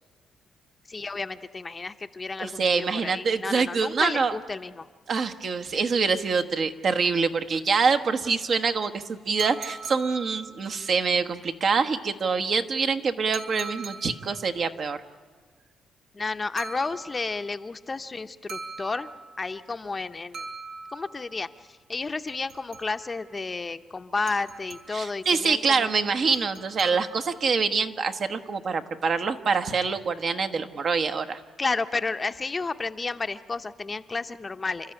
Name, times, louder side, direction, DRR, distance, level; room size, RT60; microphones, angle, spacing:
voice 1, 0.9-4.9 16.1-19.1 19.4-20.5 20.9-26.1 26.9-27.0 31.6-34.9, left 3 dB, 30° left, 9 dB, 0.8 m, -32 dB
voice 2, 2.4-4.4 5.1-15.0 24.9-31.4, right 5 dB, 50° right, 8 dB, 1.2 m, -25 dB
sound 1, 9.4-10.9 13.3-14.5 16.6-17.5 18.5-19.5 20.3-21.4 22.3-23.2 24.3-25.2 26.3-27.4, right 4 dB, 80° right, 3.4 m, -41 dB
29.0 x 13.0 x 9.9 m, 1.6 s
cardioid pair, 90°, 0 cm